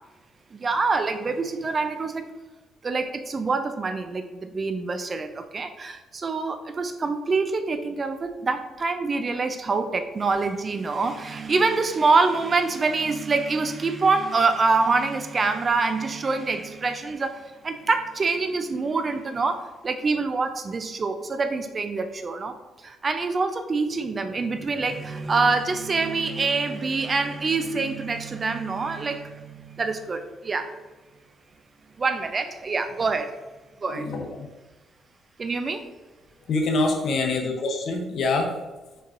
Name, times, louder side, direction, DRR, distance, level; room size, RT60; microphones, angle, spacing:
voice 1, 0.5-2.3 2.8-19.6 19.8-22.5 22.8-30.7 32.0-33.3 33.8-34.1 35.4-35.8, right 4 dB, 35° right, 8 dB, 0.5 m, -25 dB
voice 2, 33.9-34.4 36.5-38.5, left 3 dB, 65° left, 3 dB, 0.9 m, -25 dB
4.6 x 4.5 x 2.5 m, 1.2 s
cardioid pair, 90°, 0 cm